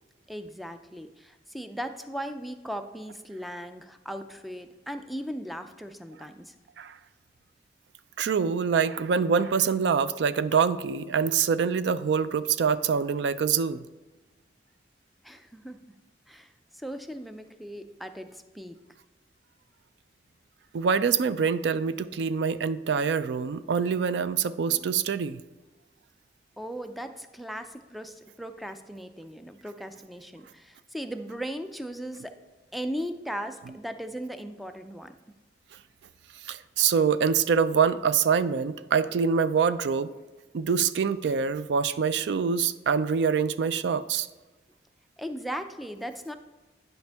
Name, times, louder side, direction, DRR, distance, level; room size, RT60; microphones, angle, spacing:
voice 1, 0.3-6.5 15.2-15.8 16.3-18.8 26.6-32.4 32.7-35.2 45.2-46.3, equal, ahead, 8 dB, 0.4 m, -38 dB
voice 2, 8.2-13.8 20.7-25.4 36.4-40.1 40.5-44.3, right 6 dB, 75° right, 14 dB, 0.3 m, -25 dB
10.5 x 5.2 x 3.4 m, 1.2 s
head